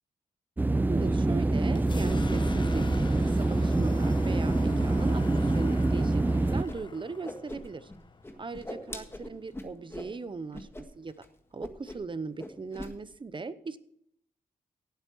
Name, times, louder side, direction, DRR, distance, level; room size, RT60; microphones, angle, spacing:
sound 1, 0.6-6.6, right 2 dB, 10° right, 0.4 m, -25 dB
voice 1, 0.9-2.9 3.2-6.2 6.5-7.9 8.4-11.2 11.5-13.8, right 4 dB, 35° right, 14 dB, 0.8 m, -38 dB
sound 2, 1.7-9.4, left 3 dB, 30° left, 0.9 m, -42 dB
Whoosh swoosh swish, 6.7-6.8 7.0-8.0 8.2-10.1 10.5-10.8 11.1-11.3 11.6-12.1 12.4-12.9, left 1 dB, 15° left, 1.7 m, -41 dB
17.0 x 8.3 x 4.6 m, 0.70 s
cardioid pair, 85°, 15 cm